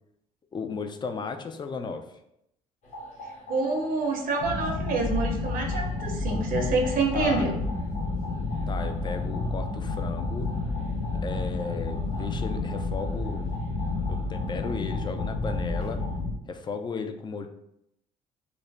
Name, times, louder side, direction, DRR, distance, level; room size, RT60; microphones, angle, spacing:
voice 1, 0.5-2.0 7.1-7.4 8.7-10.5 11.2-13.5 14.1-16.0 16.5-17.5, left 5 dB, 25° left, 6 dB, 0.4 m, -35 dB
sound 1, 2.8-16.2, equal, 45° left, 1.0 m, -43 dB
voice 2, 3.5-7.6, right 3 dB, 55° right, 2 dB, 0.7 m, -27 dB
sound 2, 4.4-16.3, left 3 dB, 70° left, 0.7 m, -30 dB
2.5 x 2.1 x 3.3 m, 0.78 s
supercardioid pair, 70°, 17 cm